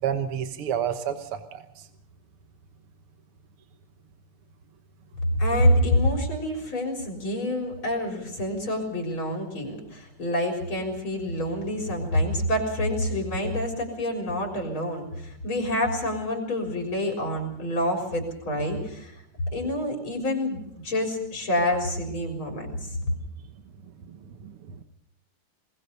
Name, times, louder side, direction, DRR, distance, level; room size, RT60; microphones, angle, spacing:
voice 1, 0.0-1.9 24.0-24.8, right 9 dB, 85° right, 8 dB, 2.2 m, -31 dB
voice 2, 5.4-19.2 19.5-22.9, left 1 dB, 65° left, 2 dB, 4.8 m, -27 dB
22.0 x 20.0 x 6.7 m, 0.77 s
omnidirectional pair, 2.4 m